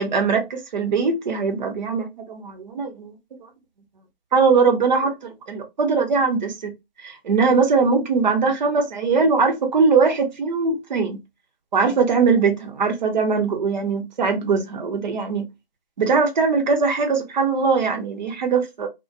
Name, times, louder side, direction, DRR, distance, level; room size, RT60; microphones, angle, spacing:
voice 1, 0.0-3.1 4.3-6.7 7.0-11.2 11.7-15.4 16.0-18.9, right 4 dB, 50° right, 0.8 m, -21 dB
2.6 x 2.1 x 2.3 m
figure-of-eight pair, 155°, 30 cm